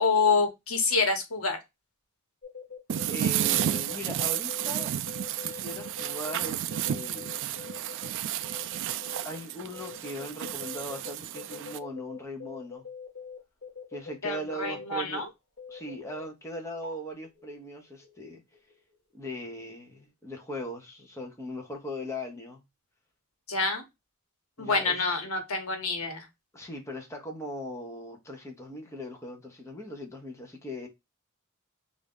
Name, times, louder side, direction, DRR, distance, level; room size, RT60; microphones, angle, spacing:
voice 1, 0.0-1.6 14.2-15.3 23.5-23.8 24.6-26.3, left 4 dB, 75° left, 1.1 m, -27 dB
sound 1, 2.4-3.1 3.4-8.1 8.4-9.4 9.7-15.0 15.6-16.2 16.6-19.0 19.3-19.7 19.9-20.0, left 6 dB, 45° left, 1.2 m, -44 dB
sound 2, 2.9-11.8, right 11 dB, 60° right, 0.3 m, -32 dB
voice 2, 3.1-4.9 5.4-7.5 9.2-12.8 13.9-15.3 15.7-18.4 19.1-22.6 24.6-25.1 26.5-30.9, equal, 15° left, 0.8 m, -39 dB
3.4 x 2.5 x 3.5 m
head